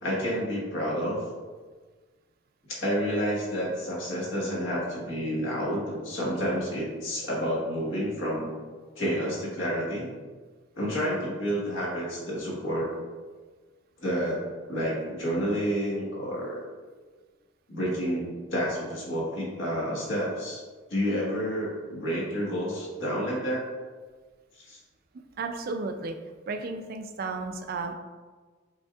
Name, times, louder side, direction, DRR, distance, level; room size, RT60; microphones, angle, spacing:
voice 1, 0.0-1.2 2.7-8.5 9.0-10.1 10.8-12.9 14.0-14.4 14.7-16.6 17.7-18.2 18.5-20.6 20.9-23.7 24.7-24.8, equal, 65° left, -5 dB, 1.4 m, -29 dB
voice 2, 25.4-26.1 26.5-27.9, right 3 dB, 45° right, 6 dB, 0.3 m, -33 dB
5.2 x 3.4 x 2.4 m, 1.4 s
head